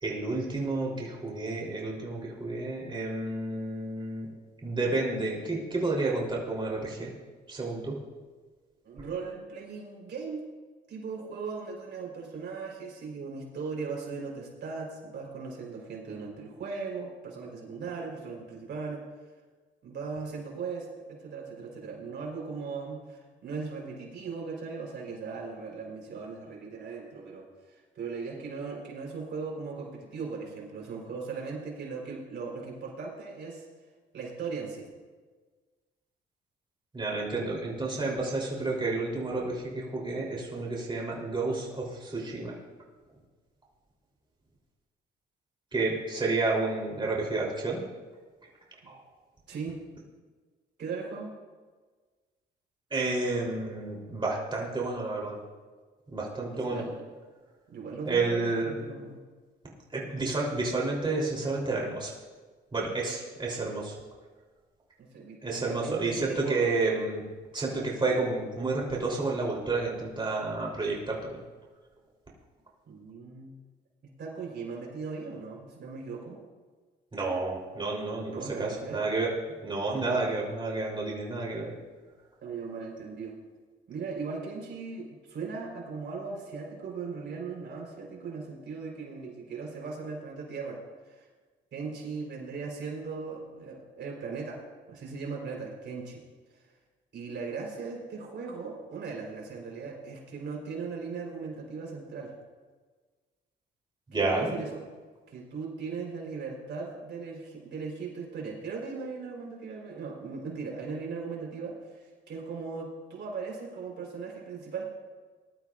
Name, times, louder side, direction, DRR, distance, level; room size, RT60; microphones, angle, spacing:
voice 1, 0.0-4.3 4.6-7.1 7.5-7.9 36.9-42.5 45.7-47.8 48.9-49.0 52.9-55.4 56.1-56.8 58.0-58.7 59.9-62.1 62.7-63.9 65.4-67.2 67.5-71.4 77.1-78.3 78.6-79.3 79.6-81.7 104.1-104.5, right 3 dB, 25° right, -3 dB, 3.4 m, -30 dB
voice 2, 8.8-10.5 10.9-19.0 19.8-33.7 34.1-34.9 48.8-48.9 49.5-49.8 50.8-51.3 56.5-57.0 57.7-59.3 65.0-66.6 72.9-73.6 74.2-76.4 78.3-79.0 80.1-80.3 82.4-83.4 83.9-91.3 91.7-94.6 94.9-96.2 96.5-96.7 97.1-102.3 104.1-104.8 105.3-114.9, right 5 dB, 60° right, -1 dB, 3.9 m, -38 dB
21.0 x 12.5 x 2.5 m, 1.4 s
cardioid pair, 90°, 20 cm